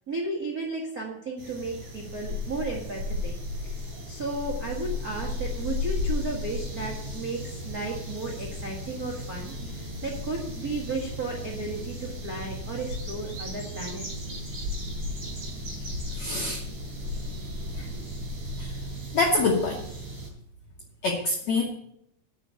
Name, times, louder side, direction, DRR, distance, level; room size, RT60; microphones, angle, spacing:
voice 1, 0.1-3.3 3.6-3.8 4.1-14.0, right 3 dB, 90° right, -2 dB, 0.8 m, -34 dB
sound 1, 1.4-20.3, left 2 dB, 35° right, 4.2 m, -35 dB
voice 2, 16.2-16.6 17.7-17.9 18.6-18.7 19.1-19.8 21.0-21.6, left 3 dB, 75° left, 0 dB, 1.5 m, -25 dB
10.0 x 6.0 x 8.3 m, 0.77 s
omnidirectional pair, 4.9 m